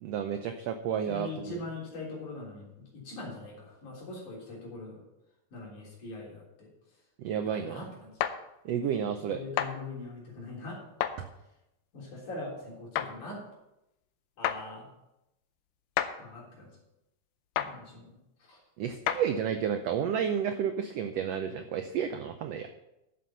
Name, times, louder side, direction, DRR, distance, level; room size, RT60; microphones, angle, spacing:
voice 1, 0.0-1.6 7.2-7.8 8.6-9.4 18.8-22.7, right 8 dB, 85° right, 7 dB, 1.4 m, -31 dB
voice 2, 0.8-5.0 5.5-6.7 7.4-8.1 9.3-10.8 11.9-13.4 14.4-14.9 16.2-16.7 17.6-18.1 18.4-18.6, left 2 dB, 65° left, -4 dB, 4.9 m, -42 dB
sound 1, 8.2-8.4 9.6-9.7 11.0-11.2 13.0-13.1 14.4-14.6 16.0-16.1 17.6-17.7 19.1-19.2, left 11 dB, 85° left, 2.2 m, -29 dB
11.5 x 7.7 x 5.7 m, 0.88 s
omnidirectional pair, 3.8 m